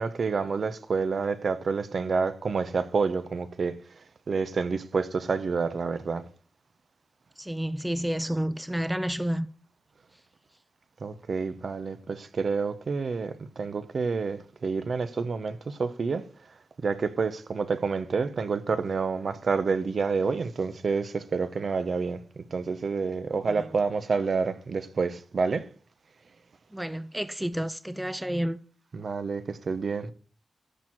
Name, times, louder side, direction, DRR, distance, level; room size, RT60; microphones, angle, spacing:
voice 1, 0.0-3.7 4.3-6.2 11.0-16.2 16.8-22.2 22.5-25.6 28.9-30.1, right 4 dB, 55° right, 1.0 m, -28 dB
voice 2, 7.4-9.5 26.7-28.6, equal, 5° right, 0.5 m, -30 dB
13.5 x 4.6 x 7.7 m
wide cardioid pair, 110°, 0 cm